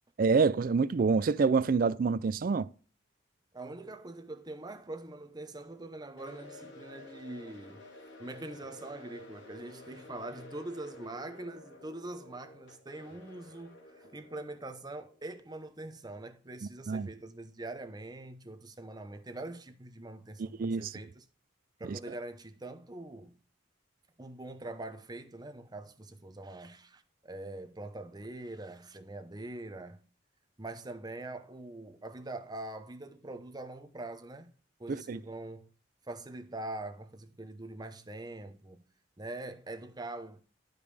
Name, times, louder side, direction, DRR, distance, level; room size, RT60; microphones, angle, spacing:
voice 1, 0.2-2.7 16.9-17.1 20.4-21.0 21.9-22.0 34.9-35.2, right 4 dB, 50° right, 0.4 m, -27 dB
voice 2, 3.5-7.9 8.2-21.2 21.8-23.4 24.2-30.1 30.6-34.5 34.8-35.7 36.1-38.8 39.2-40.4, right 2 dB, 20° right, 0.8 m, -43 dB
sound 1, 6.2-16.2, left 1 dB, 65° left, 2.6 m, -52 dB
11.5 x 5.2 x 3.3 m
head